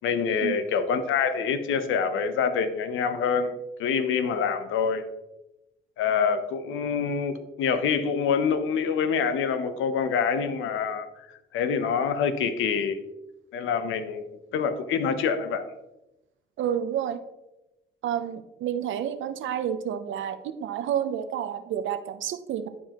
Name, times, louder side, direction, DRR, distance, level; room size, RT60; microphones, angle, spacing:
voice 1, 0.0-5.0 6.0-11.1 11.5-13.0 13.5-14.2 14.5-15.6, left 6 dB, 85° left, 10 dB, 0.7 m, -26 dB
voice 2, 16.6-17.2 18.0-22.7, right 9 dB, 75° right, 9 dB, 0.7 m, -30 dB
11.0 x 4.7 x 2.9 m, 0.96 s
cardioid pair, 90°, 20 cm